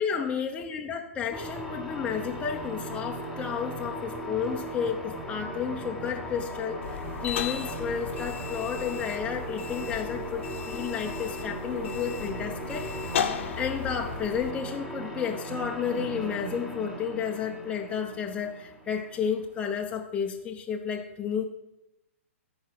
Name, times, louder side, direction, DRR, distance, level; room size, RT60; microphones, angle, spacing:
voice 1, 0.0-12.9 13.6-21.4, left 7 dB, 15° left, 1 dB, 0.8 m, -32 dB
sound 1, 1.3-19.6, right 1 dB, 5° right, 1.4 m, -38 dB
sound 2, 6.8-14.5, left 8 dB, 60° left, 1.0 m, -36 dB
13.5 x 4.8 x 6.0 m, 0.91 s
hypercardioid pair, 120°, 7 cm